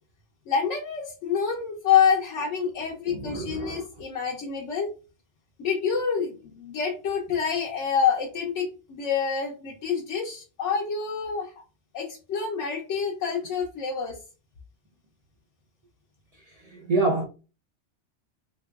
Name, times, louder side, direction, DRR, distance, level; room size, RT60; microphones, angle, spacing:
voice 1, 0.5-4.9 5.6-11.5 11.9-14.2, left 7 dB, 80° left, 1.0 m, -27 dB
voice 2, 3.1-3.8 16.7-17.3, right 3 dB, 70° right, 0.3 m, -26 dB
3.3 x 2.9 x 2.3 m
omnidirectional pair, 1.2 m